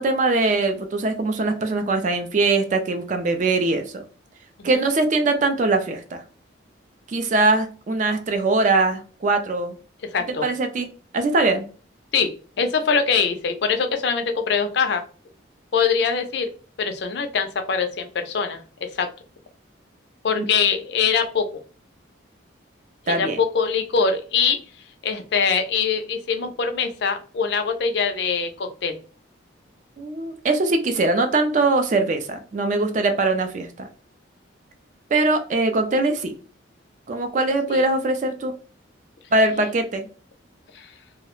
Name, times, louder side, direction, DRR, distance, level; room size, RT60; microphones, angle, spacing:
voice 1, 0.0-4.0 4.6-6.2 7.1-9.7 10.3-10.9 11.1-11.6 20.4-20.5 23.1-23.4 30.0-33.9 35.1-36.3 37.1-38.5 39.3-40.1, right 2 dB, 40° right, 7 dB, 0.3 m, -22 dB
voice 2, 10.1-10.5 12.1-12.3 12.6-15.0 15.7-16.5 16.8-19.1 20.2-21.5 23.1-24.6 25.0-29.0 37.7-37.8 40.7-40.9, left 6 dB, 60° left, 7 dB, 0.4 m, -23 dB
2.3 x 2.0 x 3.0 m, 0.38 s
head